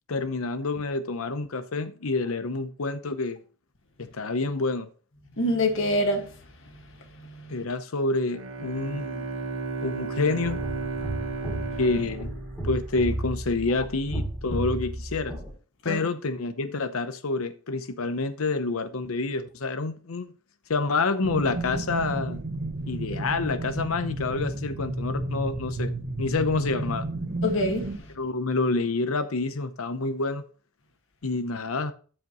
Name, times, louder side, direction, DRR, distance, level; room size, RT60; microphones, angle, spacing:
voice 1, 0.1-3.4 4.1-4.9 7.5-9.2 9.8-10.6 11.8-12.3 12.6-15.3 15.8-20.3 20.7-22.4 22.9-25.9 26.2-27.1 28.2-30.4 31.2-31.9, left 3 dB, 90° left, 0.7 m, -28 dB
voice 2, 5.4-7.6 15.8-16.0 27.4-28.1, left 1 dB, 65° left, 1.7 m, -27 dB
Bowed string instrument, 8.3-13.5, right 3 dB, 65° right, 1.2 m, -34 dB
sound 1, 10.4-15.5, right 1 dB, ahead, 2.9 m, -33 dB
sound 2, 21.2-28.0, right 2 dB, 50° right, 1.0 m, -32 dB
13.5 x 5.1 x 3.0 m
head